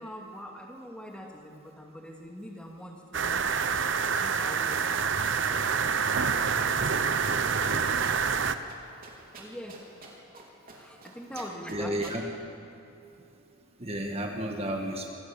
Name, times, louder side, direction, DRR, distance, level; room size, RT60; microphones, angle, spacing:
voice 1, 0.0-3.4 4.1-8.4 9.4-9.8 10.7-12.1, equal, 5° left, 0 dB, 2.3 m, -44 dB
sound 1, 3.1-8.6, right 6 dB, 60° right, 0.9 m, -27 dB
sound 2, 7.8-8.4 8.7-8.8 9.0-10.4 10.7-11.1 11.4-12.2, right 4 dB, 45° right, 3.8 m, -47 dB
voice 2, 11.7-12.2 13.8-15.1, right 1 dB, 30° right, 2 dB, 1.6 m, -32 dB
26.0 x 18.5 x 7.1 m, 2.8 s
head